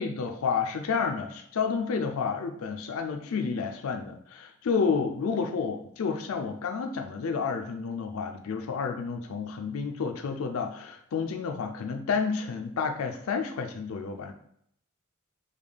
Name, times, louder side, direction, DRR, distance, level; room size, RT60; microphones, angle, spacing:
voice 1, 0.0-14.3, left 5 dB, 85° left, 5 dB, 0.4 m, -30 dB
5.1 x 2.3 x 3.3 m, 0.69 s
head